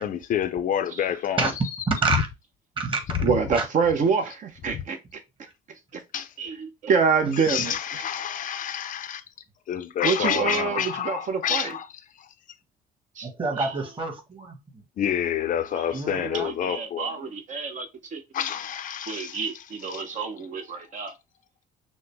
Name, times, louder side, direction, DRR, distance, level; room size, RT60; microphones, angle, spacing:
voice 1, 0.0-1.5 4.7-4.8 6.1-6.3 7.3-9.2 9.7-11.9 15.0-17.3 18.3-20.0, left 9 dB, 50° left, 0.5 m, -28 dB
voice 2, 1.9-2.3 2.8-3.2 3.5-3.6 13.2-14.8 15.9-16.5, right 3 dB, 30° right, 1.5 m, -28 dB
voice 3, 3.2-5.0 5.9-6.0 6.4-7.7 10.0-11.7 13.2-13.3 13.6-13.7 15.7-15.8 16.1-18.2 19.1-21.1, right 5 dB, 45° right, 0.8 m, -26 dB
6.2 x 2.1 x 3.4 m
cardioid pair, 110°, 17 cm